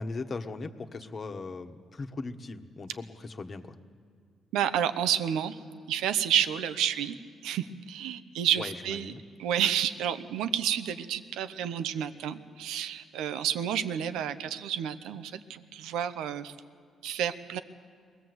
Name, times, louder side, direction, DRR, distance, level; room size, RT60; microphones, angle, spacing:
voice 1, 0.0-3.8 8.5-9.2, left 3 dB, 40° left, 7 dB, 1.3 m, -38 dB
voice 2, 4.5-5.6 5.9-7.2 7.4-9.1 9.4-16.5 17.0-17.6, right 9 dB, 90° right, 11 dB, 0.8 m, -30 dB
22.5 x 18.5 x 8.0 m, 2.3 s
cardioid pair, 90°, 0 cm